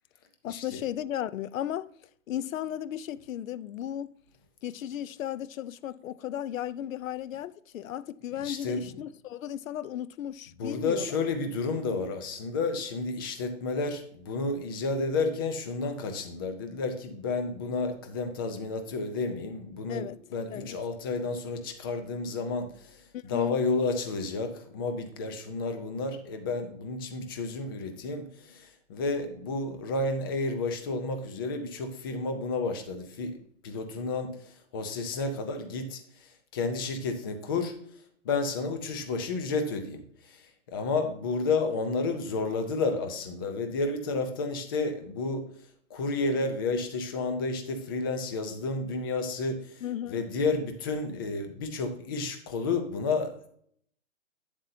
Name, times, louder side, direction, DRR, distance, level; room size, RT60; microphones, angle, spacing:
voice 1, 0.4-1.9 2.3-4.1 4.6-11.1 19.9-20.2 20.5-20.8 23.1-23.6 49.8-50.2, left 11 dB, 85° left, 0.6 m, -35 dB
voice 2, 8.4-8.9 10.6-33.4 33.6-37.7 38.2-40.4 40.7-45.4 45.9-49.8 50.1-53.5, left 3 dB, 20° left, 0.5 m, -31 dB
8.9 x 7.6 x 2.7 m
hypercardioid pair, 160°, 39 cm